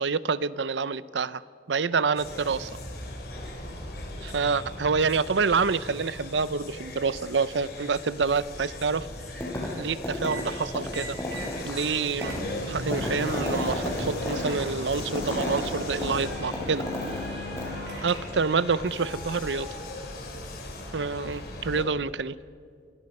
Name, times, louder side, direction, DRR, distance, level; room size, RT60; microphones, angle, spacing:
voice 1, 0.0-1.4 1.7-2.7 4.2-9.1 9.8-11.2 11.6-12.3 12.7-16.9 18.0-19.7 20.9-22.3, right 5 dB, 90° right, 17 dB, 0.6 m, -27 dB
sound 1, 2.2-21.8, left 1 dB, 60° left, 3.8 m, -38 dB
sound 2, 9.4-9.8 10.0-17.3 17.6-17.7, left 1 dB, 15° left, 5.9 m, -33 dB
sound 3, 10.3-10.5 10.9-11.5 11.8-11.9 12.2-18.5, equal, 60° right, 7.1 m, -39 dB
28.5 x 21.5 x 5.5 m, 2.2 s
head